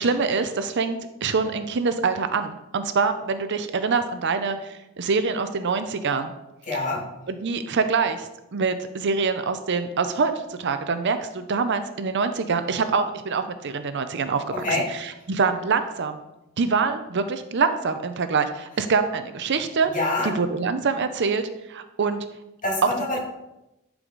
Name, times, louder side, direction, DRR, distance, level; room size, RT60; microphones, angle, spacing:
voice 1, 0.0-6.3 7.3-14.4 15.3-16.2 16.6-19.9 20.4-22.2, right 4 dB, 55° right, 9 dB, 0.6 m, -25 dB
voice 2, 6.7-7.0 14.5-14.9 19.9-20.4 22.6-23.2, left 2 dB, 35° left, -3 dB, 2.4 m, -26 dB
11.0 x 4.8 x 3.9 m, 0.92 s
head